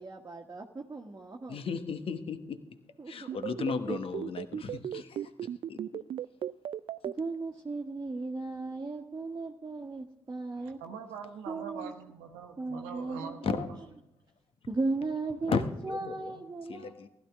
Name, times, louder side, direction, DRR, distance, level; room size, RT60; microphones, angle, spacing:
voice 1, 0.0-1.6 3.0-3.4 7.1-10.8 11.5-11.9 12.6-13.5 14.7-17.1, right 3 dB, 30° right, 1.4 m, -36 dB
voice 2, 1.5-2.8 3.1-6.0 13.4-13.7 15.5-16.3 16.7-17.1, left 5 dB, 55° left, 1.2 m, -35 dB
sound 1, 3.3-7.1, right 10 dB, 50° right, 0.4 m, -35 dB
voice 3, 10.5-13.6, right 6 dB, 80° right, 1.1 m, -43 dB
15.5 x 11.5 x 3.6 m
hypercardioid pair, 40°, 12 cm